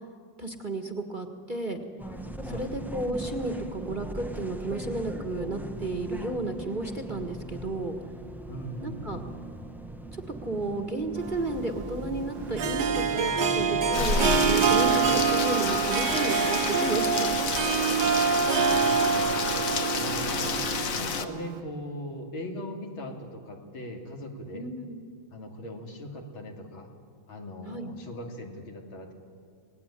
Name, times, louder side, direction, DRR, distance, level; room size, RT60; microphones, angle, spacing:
voice 1, 0.4-1.8 2.4-7.9 8.8-9.2 10.1-17.4 24.5-25.0 27.6-28.0, right 2 dB, 25° right, 5 dB, 1.5 m, -33 dB
sound 1, 2.0-15.3, right 1 dB, ahead, 0.5 m, -39 dB
voice 2, 8.5-9.2 18.1-20.6 21.0-24.7 25.3-26.9 27.3-29.1, left 1 dB, 80° left, 2 dB, 3.4 m, -40 dB
Harp, 11.2-21.6, right 6 dB, 60° right, 1.6 m, -26 dB
Rain, 13.9-21.2, left 5 dB, 45° left, 1.4 m, -30 dB
27.5 x 18.5 x 9.9 m, 2.3 s
omnidirectional pair, 2.2 m